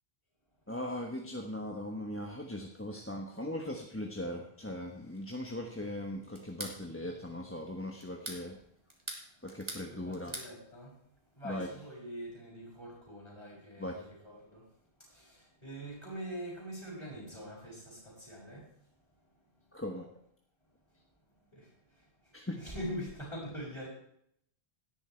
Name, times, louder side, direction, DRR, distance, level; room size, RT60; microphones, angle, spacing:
voice 1, 0.7-8.6 9.4-10.4 11.4-11.7 13.8-14.0 19.7-20.1 22.3-22.6, left 1 dB, 15° left, 1 dB, 1.2 m, -39 dB
sound 1, 6.4-6.8 8.0-8.4 8.9-9.9 10.1-10.5, right 1 dB, 30° right, 2.5 m, -42 dB
voice 2, 9.7-10.9 11.3-14.7 15.0-18.7 21.5-22.0 22.6-23.9, equal, 35° left, -9 dB, 5.3 m, -44 dB
17.5 x 10.0 x 4.5 m, 0.70 s
omnidirectional pair, 1.0 m